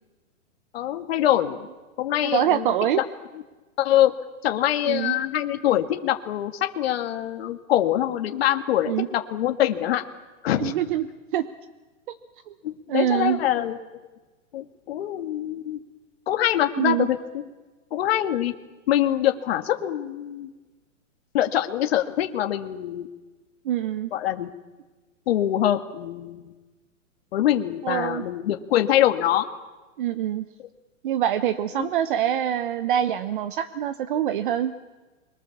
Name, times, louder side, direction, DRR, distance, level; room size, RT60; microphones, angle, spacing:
voice 1, 0.7-1.7 2.0-3.0 3.8-4.1 4.4-10.0 10.4-10.7 12.6-13.8 14.5-15.8 16.3-17.2 17.9-18.5 18.9-20.5 21.3-23.1 24.1-24.5 25.3-26.5 27.3-29.5 31.8-31.9, left 12 dB, 50° left, 5 dB, 2.0 m, -24 dB
voice 2, 2.2-3.0 4.9-5.2 8.9-9.1 10.6-11.5 12.1-12.2 12.5-12.6 12.9-13.4 16.8-17.1 23.6-24.1 27.8-28.2 30.0-30.4 31.0-34.7, right 10 dB, 40° right, 11 dB, 1.0 m, -25 dB
30.0 x 23.0 x 7.2 m, 1.2 s
hypercardioid pair, 160°, 39 cm